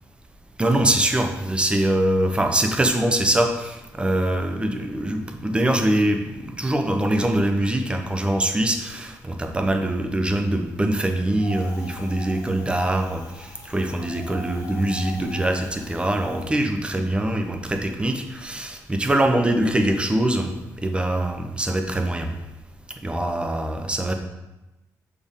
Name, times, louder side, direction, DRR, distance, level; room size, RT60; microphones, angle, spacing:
voice 1, 0.6-22.3 23.0-24.1, right 1 dB, 15° right, 5 dB, 0.8 m, -23 dB
Wind, 11.4-16.5, left 2 dB, 65° left, 1.7 m, -41 dB
6.7 x 4.3 x 3.6 m, 1.0 s
cardioid pair, 80°, 7 cm